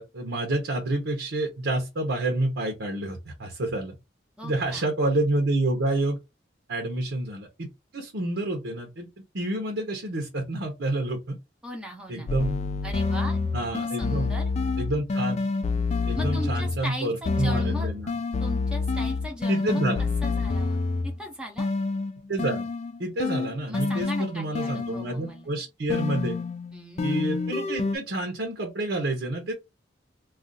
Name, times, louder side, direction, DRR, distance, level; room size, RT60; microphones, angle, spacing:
voice 1, 0.0-4.0 4.4-6.2 6.7-7.7 7.9-9.1 9.3-11.4 12.1-12.6 13.5-14.3 14.8-15.4 16.1-18.2 19.5-20.0 22.3-22.7 23.0-26.4 27.0-29.5, right 1 dB, 75° right, 0.8 m, -28 dB
voice 2, 4.4-4.9 11.6-12.3 12.8-13.4 14.0-14.4 16.1-17.9 18.4-21.7 23.7-25.5 26.7-27.1, equal, 5° right, 0.7 m, -38 dB
sound 1, 12.3-16.9 17.2-21.2 21.6-25.3 25.9-28.0, left 3 dB, 35° left, 0.3 m, -28 dB
2.4 x 2.4 x 3.8 m
head